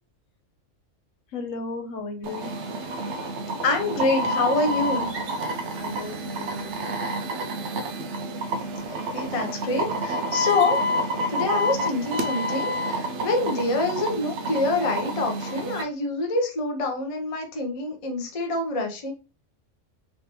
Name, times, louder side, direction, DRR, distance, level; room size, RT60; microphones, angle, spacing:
voice 1, 1.3-2.5 5.8-7.0, left 3 dB, 80° left, 4 dB, 1.2 m, -35 dB
sound 1, 2.2-15.8, equal, 70° right, 0.8 m, -29 dB
voice 2, 3.6-5.1 8.9-10.8 11.3-19.1, left 2 dB, 35° left, 3 dB, 0.6 m, -26 dB
3.3 x 3.2 x 2.9 m, 0.32 s
omnidirectional pair, 1.3 m